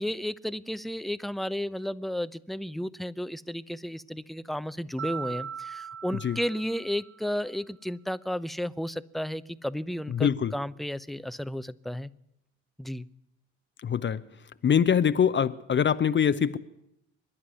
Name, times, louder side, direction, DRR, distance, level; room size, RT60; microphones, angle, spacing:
voice 1, 0.0-12.1 12.8-13.1, equal, ahead, 0.7 m, -33 dB
Mallet percussion, 5.0-7.4, right 7 dB, 80° right, 1.4 m, -39 dB
voice 2, 10.1-10.5 13.8-14.2 14.6-16.6, left 8 dB, 35° left, 0.8 m, -23 dB
24.5 x 11.0 x 9.6 m
figure-of-eight pair, 45°, 34 cm